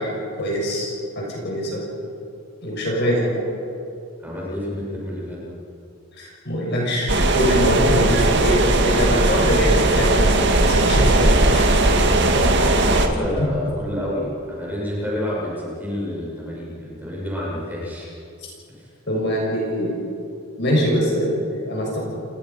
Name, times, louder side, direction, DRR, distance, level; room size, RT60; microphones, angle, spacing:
voice 1, 0.0-1.8 2.6-3.4 6.1-11.6 12.7-12.9 13.4-13.5 19.1-20.0 20.6-22.0, equal, 50° left, -2 dB, 6.6 m, -23 dB
voice 2, 4.2-5.5 12.9-18.1 18.8-18.9, left 1 dB, 10° right, -5 dB, 6.7 m, -29 dB
sound 1, 7.1-13.1, right 2 dB, 50° right, 2.0 m, -18 dB
29.5 x 20.0 x 5.8 m, 2.7 s
head